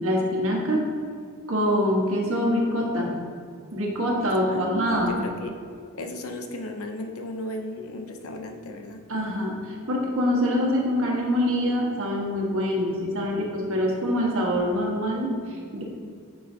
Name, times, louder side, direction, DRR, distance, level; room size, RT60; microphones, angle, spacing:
voice 1, 0.0-0.9 1.5-3.1 3.7-5.2 9.1-15.8, equal, 70° right, -2 dB, 1.4 m, -25 dB
voice 2, 4.5-5.5 5.9-9.0, left 1 dB, 80° left, 4 dB, 0.7 m, -35 dB
9.7 x 5.5 x 2.8 m, 2.1 s
head